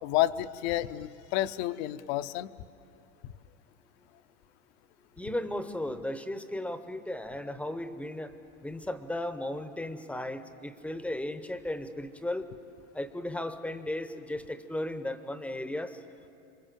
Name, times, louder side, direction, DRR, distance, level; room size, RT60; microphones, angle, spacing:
voice 1, 0.0-2.5, left 14 dB, 50° left, 15 dB, 0.8 m, -30 dB
voice 2, 5.2-8.4 8.6-12.5 12.9-16.0, left 1 dB, 5° left, 11 dB, 0.8 m, -35 dB
27.0 x 24.0 x 7.6 m, 2.7 s
supercardioid pair, 140°, 41 cm